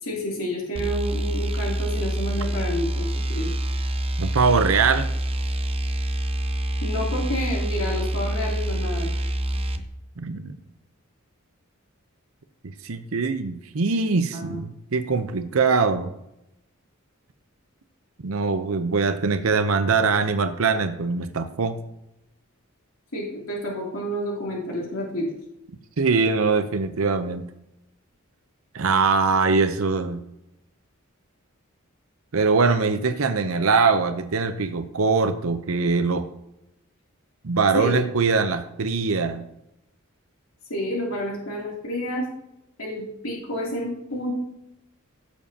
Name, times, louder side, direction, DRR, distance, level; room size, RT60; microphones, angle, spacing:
voice 1, 0.0-3.1 3.3-3.5 6.8-9.1 14.3-14.5 23.1-25.3 37.7-38.0 40.7-42.3 42.8-44.3, equal, 75° left, -3 dB, 2.9 m, -29 dB
sound 1, 0.7-9.8, right 1 dB, 25° right, 0.7 m, -26 dB
voice 2, 4.2-5.1 10.2-10.5 12.8-16.1 18.2-21.8 26.0-27.4 28.7-30.2 32.3-36.3 37.4-39.4, right 4 dB, 70° right, 9 dB, 0.7 m, -22 dB
16.0 x 7.2 x 2.8 m, 0.86 s
head